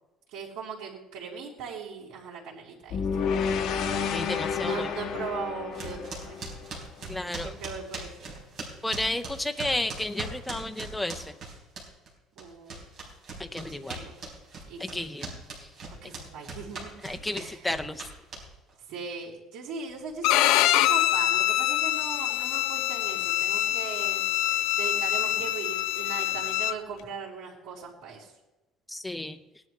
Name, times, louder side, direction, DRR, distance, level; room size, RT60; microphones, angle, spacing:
voice 1, 0.3-3.3 4.5-6.4 7.4-8.3 12.3-12.8 13.7-14.1 14.7-15.1 16.0-16.9 17.3-17.6 18.9-24.3 24.7-28.3, right 5 dB, 85° right, -6 dB, 3.5 m, -39 dB
sound 1, 2.9-7.2, left 6 dB, 55° left, 1.3 m, -30 dB
voice 2, 4.1-4.9 7.1-7.6 8.8-11.4 13.4-14.0 14.8-15.3 15.6-15.7 17.0-18.1 28.9-29.4, left 1 dB, 5° left, 7 dB, 0.5 m, -32 dB
sound 2, 5.7-12.1 12.4-18.7, right 3 dB, 40° right, 3.9 m, -40 dB
Bowed string instrument, 20.2-26.7, left 14 dB, 90° left, 0.5 m, -25 dB
18.0 x 11.0 x 3.3 m, 1.0 s
cardioid pair, 165°, 0 cm